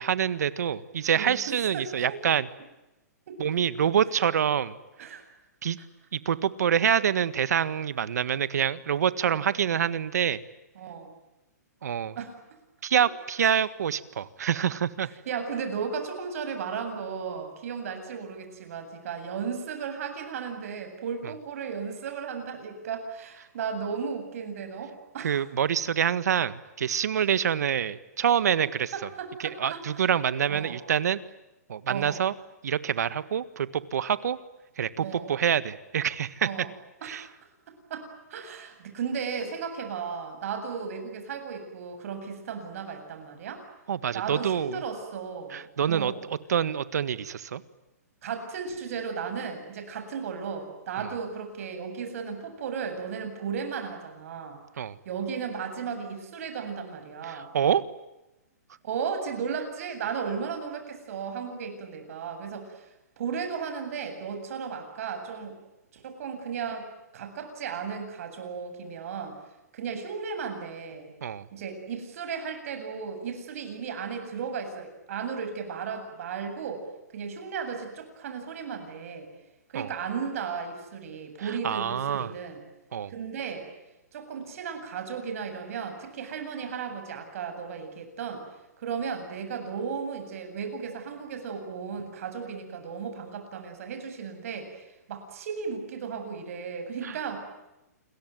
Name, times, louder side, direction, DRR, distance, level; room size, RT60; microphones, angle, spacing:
voice 1, 0.0-2.5 3.4-4.8 5.6-5.8 6.1-10.4 11.8-12.2 12.8-15.1 25.2-28.9 29.4-31.2 31.7-32.3 32.6-34.4 34.8-36.5 37.0-37.2 43.9-44.8 45.5-46.1 46.5-47.6 54.8-54.9 57.3-57.8 71.2-71.5 79.7-79.9 81.6-82.3 82.9-83.1 97.0-97.1, right 8 dB, 70° right, 15 dB, 1.7 m, -26 dB
voice 2, 1.1-2.2 3.3-3.6 5.0-5.2 5.8-5.9 9.2-9.4 10.7-11.1 12.1-12.4 13.0-13.1 13.4-13.5 15.0-25.4 28.9-30.0 30.5-30.8 31.9-32.2 35.0-35.3 36.4-36.7 37.0-37.2 37.7-43.6 44.1-46.2 48.2-54.6 55.0-57.5 58.8-62.9 63.2-65.6 65.9-66.9 67.1-69.4 69.7-71.1 71.5-76.8 77.1-79.3 79.7-82.6 83.1-83.7 84.1-88.5 88.8-97.4, right 6 dB, 55° right, 6 dB, 7.9 m, -35 dB
29.0 x 22.0 x 9.3 m, 0.96 s
hypercardioid pair, 150°, 9 cm